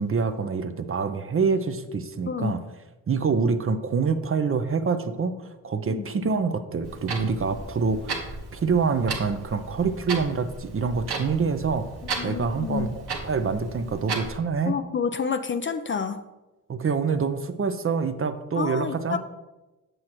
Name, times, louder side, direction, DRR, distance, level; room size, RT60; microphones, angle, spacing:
voice 1, 0.0-2.6 3.1-11.9 12.2-12.9 13.2-14.8 16.7-19.2, right 5 dB, 35° right, 10 dB, 0.6 m, -26 dB
voice 2, 2.3-2.6 5.9-6.0 12.2-12.9 14.7-16.2 18.6-19.2, left 6 dB, 30° left, 9 dB, 0.4 m, -29 dB
Clock, 6.8-14.4, right 3 dB, 85° right, 1.3 m, -35 dB
7.7 x 6.4 x 3.0 m, 1.1 s
cardioid pair, 70°, 38 cm